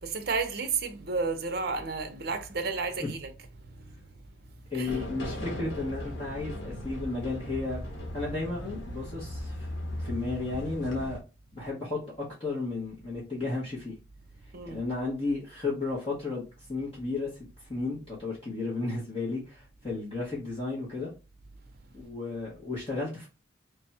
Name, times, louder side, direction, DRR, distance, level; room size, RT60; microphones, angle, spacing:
voice 1, 0.0-3.3 3.7-4.1 4.7-5.0 14.5-14.8, right 4 dB, 50° right, 0.6 m, -32 dB
voice 2, 4.7-7.8 8.1-9.7 10.0-11.2 11.5-14.0 14.7-16.4 16.7-17.3 17.7-21.1 21.9-23.3, left 3 dB, 30° left, 1.0 m, -33 dB
sound 1, 4.9-11.2, equal, 70° left, 1.1 m, -37 dB
3.4 x 2.3 x 4.1 m
head